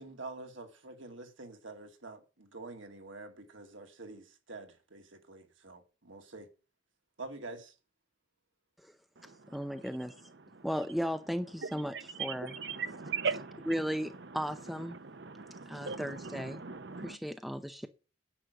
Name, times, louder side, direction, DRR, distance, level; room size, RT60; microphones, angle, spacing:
voice 1, 0.0-6.5 7.2-7.7, right 2 dB, 75° right, 2.4 m, -47 dB
voice 2, 9.5-10.2 10.6-12.6 13.2-13.4 13.7-15.0 15.7-16.6 17.0-17.9, equal, ahead, 0.6 m, -36 dB
voice 3, 12.8-13.7 15.3-16.0 16.3-17.1, right 5 dB, 60° right, 0.8 m, -37 dB
10.0 x 6.3 x 8.1 m
head